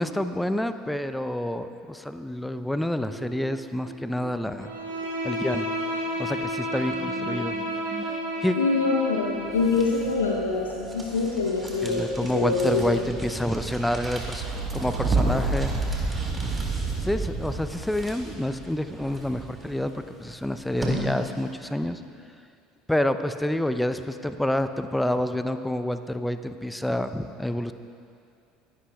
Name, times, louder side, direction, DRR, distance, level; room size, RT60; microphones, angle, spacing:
voice 1, 0.0-4.7 5.2-5.7 6.2-7.6 8.0-8.1 8.4-8.6 11.8-14.4 14.7-15.9 17.0-22.0 22.9-27.7, left 1 dB, 5° left, 10 dB, 0.6 m, -28 dB
sound 1, 3.0-4.4 4.6-19.7 20.4-21.0, right 3 dB, 40° right, 1.2 m, -32 dB
Bowed string instrument, 4.6-9.8, equal, 85° right, 2.1 m, -31 dB
voice 2, 8.6-12.1 12.3-13.0, left 4 dB, 85° left, -1 dB, 0.8 m, -25 dB
sound 2, 9.2-21.7, equal, 15° right, 2.2 m, -40 dB
21.0 x 11.5 x 2.3 m, 2.5 s
figure-of-eight pair, 65°, 0 cm